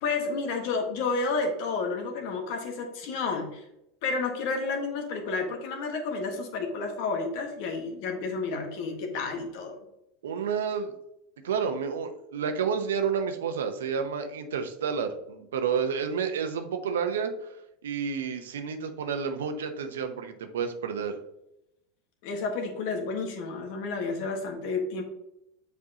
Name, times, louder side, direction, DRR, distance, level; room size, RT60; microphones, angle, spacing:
voice 1, 0.0-3.6 4.0-9.8 22.2-25.0, left 4 dB, 60° left, 3 dB, 1.4 m, -31 dB
voice 2, 10.2-10.9 11.4-17.3 17.8-21.2, right 6 dB, 80° right, 7 dB, 0.8 m, -30 dB
7.4 x 4.6 x 2.8 m, 0.83 s
hypercardioid pair, 95°, 0 cm